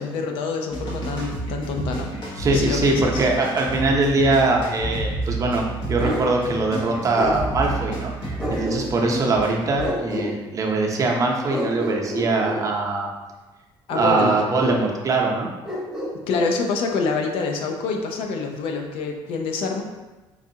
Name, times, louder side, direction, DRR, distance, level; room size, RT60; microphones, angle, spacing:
voice 1, 0.0-3.3 13.9-14.4 16.3-19.8, left 4 dB, 70° left, 3 dB, 0.6 m, -26 dB
sound 1, 0.7-9.9, right 2 dB, 55° left, 1.2 m, -30 dB
voice 2, 2.4-8.1 8.5-13.1 13.9-15.5, right 3 dB, 35° right, 0 dB, 0.7 m, -22 dB
Bark, 6.0-6.3 7.1-7.4 8.4-9.1 9.8-10.3 11.5-12.6 13.9-14.8 15.6-16.5, equal, ahead, 1.0 m, -28 dB
5.3 x 2.3 x 2.8 m, 1.2 s
cardioid pair, 105°, 9 cm